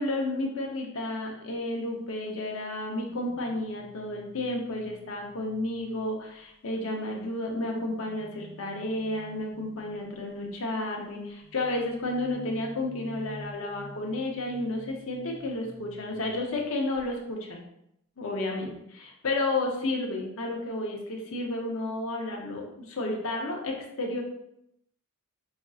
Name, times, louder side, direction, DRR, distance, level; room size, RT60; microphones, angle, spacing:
voice 1, 0.0-17.6 18.2-24.2, left 2 dB, 70° left, 0 dB, 0.7 m, -32 dB
sound 1, 2.9-6.5 7.1-10.4 11.4-16.6 16.9-17.2, left 1 dB, 10° right, 0.7 m, -50 dB
5.0 x 2.5 x 2.4 m, 0.77 s
head